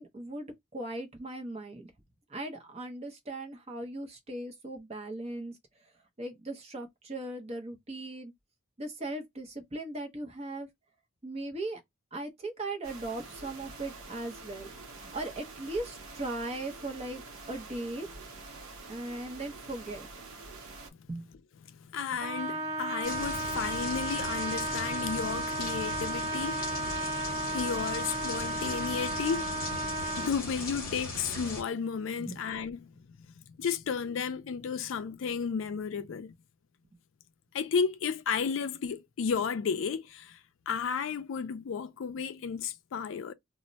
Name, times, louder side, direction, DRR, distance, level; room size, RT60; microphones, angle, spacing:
voice 1, 0.0-1.9 2.3-5.9 6.2-8.3 8.8-10.7 11.2-11.8 12.1-17.2 17.5-18.1 18.9-20.1 21.1-21.3 32.2-32.4, right 2 dB, 30° right, 0.6 m, -38 dB
sound 1, 12.8-20.9, right 3 dB, 80° right, 0.7 m, -47 dB
voice 2, 21.6-32.9 33.4-36.3 37.5-40.4 40.7-43.3, left 6 dB, 65° left, 0.4 m, -33 dB
Trumpet, 22.2-30.4, right 2 dB, 55° right, 0.9 m, -34 dB
sound 2, 23.0-31.6, left 2 dB, 45° left, 0.8 m, -38 dB
2.1 x 2.0 x 3.8 m
head